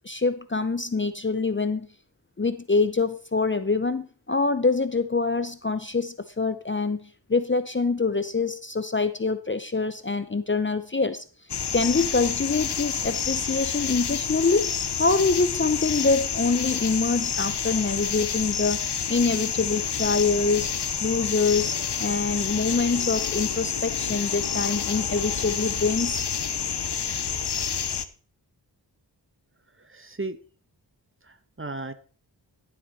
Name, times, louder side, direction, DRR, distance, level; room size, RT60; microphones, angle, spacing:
voice 1, 0.0-1.9 2.4-11.2 11.7-20.7 21.0-26.2, left 4 dB, 25° left, 12 dB, 0.7 m, -25 dB
sound 1, 11.5-28.1, left 7 dB, 65° left, 0.9 m, -28 dB
voice 2, 29.8-30.4 31.2-31.9, right 2 dB, 30° right, 11 dB, 1.2 m, -35 dB
12.5 x 7.8 x 4.2 m, 0.39 s
wide cardioid pair, 50°, 43 cm